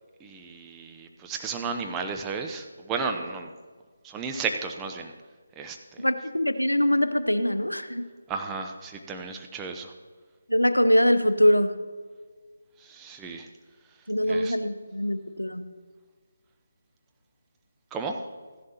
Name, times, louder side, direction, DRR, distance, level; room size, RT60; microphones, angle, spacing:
voice 1, 0.2-3.5 4.0-5.1 5.6-6.0 8.3-9.9 12.8-13.5 14.3-14.6 17.9-18.3, right 4 dB, 10° right, 3 dB, 0.6 m, -33 dB
voice 2, 6.0-8.0 10.5-11.7 14.1-15.6, equal, 85° left, 10 dB, 0.7 m, -23 dB
15.0 x 11.0 x 2.9 m, 1.5 s
figure-of-eight pair, 150°, 0 cm